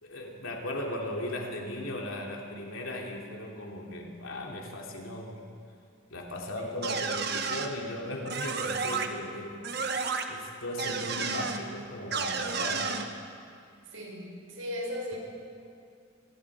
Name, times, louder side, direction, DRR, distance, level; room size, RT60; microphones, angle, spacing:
voice 1, 0.0-5.4 6.1-9.6 10.3-13.1, left 1 dB, 90° left, 0 dB, 3.1 m, -37 dB
sound 1, 6.8-7.7 8.3-9.1 9.6-10.3 10.8-11.6 12.1-13.0, right 5 dB, 50° right, 1.4 m, -31 dB
voice 2, 13.9-15.2, left 1 dB, 85° right, -2 dB, 6.4 m, -37 dB
25.0 x 21.0 x 5.0 m, 2.3 s
head